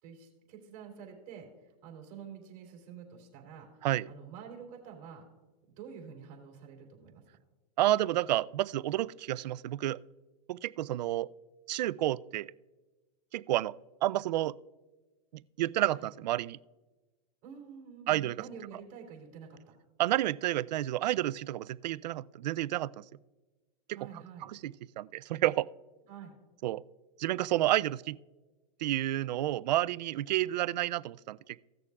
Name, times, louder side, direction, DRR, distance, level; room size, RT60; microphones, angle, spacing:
voice 1, 0.0-5.2 5.7-7.2 16.0-16.1 17.4-19.8 23.9-24.5 26.1-26.3, right 7 dB, 40° right, 1 dB, 3.1 m, -48 dB
voice 2, 7.8-10.0 10.5-11.3 11.7-12.5 13.3-13.7 14.0-14.6 15.6-16.6 18.1-18.4 20.0-23.0 23.9-24.0 24.6-25.7 26.6-26.8 27.2-28.2 28.8-31.4, right 14 dB, 85° right, 18 dB, 0.4 m, -30 dB
17.0 x 6.7 x 2.4 m, 1.2 s
supercardioid pair, 145°, 21 cm